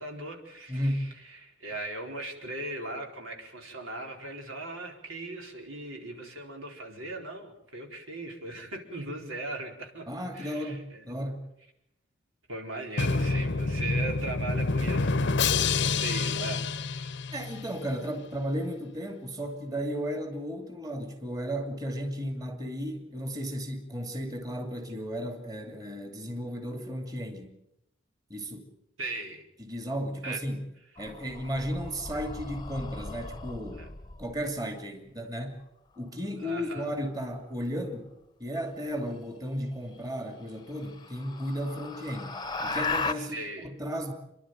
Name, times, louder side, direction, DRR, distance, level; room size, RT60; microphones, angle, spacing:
voice 1, 0.0-10.1 10.3-11.1 12.5-17.2 29.0-29.4 30.2-30.4 33.8-33.9 36.4-36.9 43.1-43.7, right 2 dB, 90° right, 1 dB, 4.6 m, -38 dB
voice 2, 0.7-1.1 10.1-11.5 17.3-27.5 28.3-28.7 29.6-30.6 31.0-33.9 34.2-35.6 36.0-38.1 38.4-44.1, equal, 20° right, 4 dB, 2.6 m, -34 dB
Drum, 13.0-17.8, left 4 dB, 60° left, 0.7 m, -28 dB
sound 1, 31.0-34.5 36.8-37.3 39.3-39.4 39.9-40.0 40.5-43.1, left 3 dB, 20° left, 0.9 m, -36 dB
29.5 x 11.5 x 9.1 m, 0.85 s
head